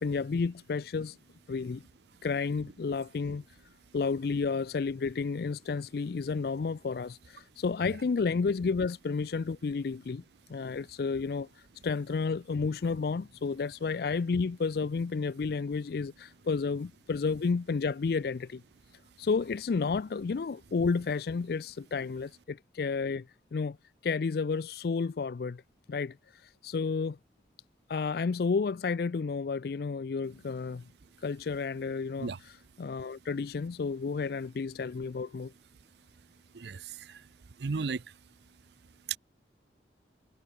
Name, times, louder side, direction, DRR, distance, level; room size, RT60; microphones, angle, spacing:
voice 1, 0.0-1.2 1.5-1.8 2.2-3.4 3.9-10.2 10.5-11.5 11.8-18.6 19.2-23.3 23.5-23.8 24.0-25.6 25.9-27.2 27.9-30.8 31.2-32.5 32.8-35.5, left 4 dB, 60° left, 0.4 m, -31 dB
voice 2, 36.5-37.2 37.6-38.0 39.1-39.2, right 5 dB, 70° right, 0.6 m, -34 dB
head